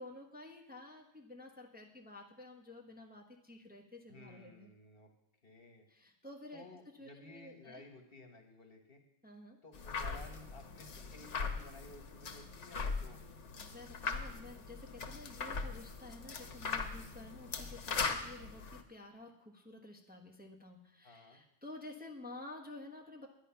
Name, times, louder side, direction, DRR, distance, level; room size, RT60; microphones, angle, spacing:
voice 1, 0.0-4.7 5.9-6.6 7.0-7.8 9.2-9.6 13.6-23.3, left 2 dB, 10° right, 1 dB, 1.1 m, -51 dB
voice 2, 4.1-5.1 5.4-5.9 6.5-9.0 9.6-13.2 21.0-21.4, left 2 dB, 50° left, 4 dB, 1.5 m, -55 dB
sound 1, 9.7-18.8, left 4 dB, 65° left, 1.3 m, -40 dB
11.0 x 9.9 x 5.7 m, 0.80 s
omnidirectional pair, 1.3 m